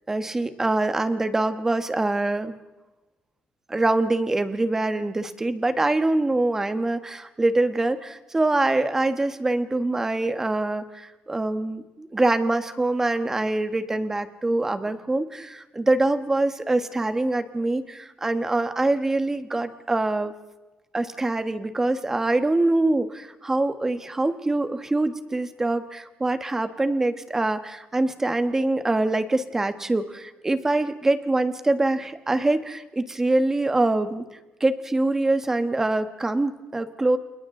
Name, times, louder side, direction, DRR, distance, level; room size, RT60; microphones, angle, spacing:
voice 1, 0.1-2.5 3.7-20.3 20.9-34.2 34.6-37.2, right 2 dB, 15° right, 9 dB, 1.4 m, -24 dB
30.0 x 29.0 x 3.9 m, 1.1 s
cardioid pair, 165°, 3 cm